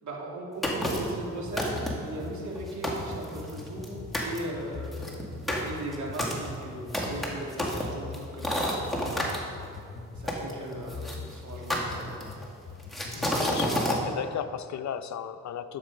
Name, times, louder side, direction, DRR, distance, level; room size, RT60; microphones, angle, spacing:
voice 1, 0.0-5.3 5.6-9.3 10.1-12.1, right 1 dB, 65° right, -2 dB, 2.6 m, -38 dB
sound 1, 0.6-1.2 1.6-2.1 2.6-2.7 2.8-3.9 4.1-4.4 4.9-9.4 10.3-11.2 11.7-12.4 12.9-14.0, equal, ahead, 2.0 m, -30 dB
sound 2, 0.9-13.3, left 4 dB, 45° left, 1.6 m, -43 dB
voice 2, 13.1-15.8, left 9 dB, 60° left, 9 dB, 0.6 m, -35 dB
12.0 x 7.6 x 5.2 m, 2.4 s
cardioid pair, 90°, 31 cm